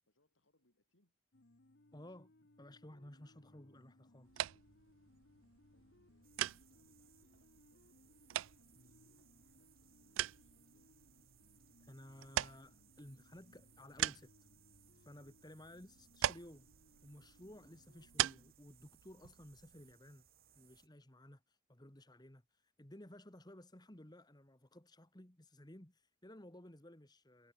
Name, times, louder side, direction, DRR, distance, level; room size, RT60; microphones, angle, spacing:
voice 1, 0.1-1.2 2.0-2.2 5.4-10.9 17.9-18.1, left 1 dB, 75° left, 4.9 m, -80 dB
sound 1, 1.3-18.5, left 1 dB, 55° left, 1.4 m, -68 dB
voice 2, 1.9-2.3 2.6-4.5 11.8-14.3 15.0-16.7 17.0-20.3 20.6-27.5, left 1 dB, 20° left, 1.9 m, -56 dB
sound 2, 4.2-19.9, right 12 dB, 80° right, 0.3 m, -44 dB
sound 3, 6.2-20.9, right 10 dB, 50° right, 5.6 m, -69 dB
head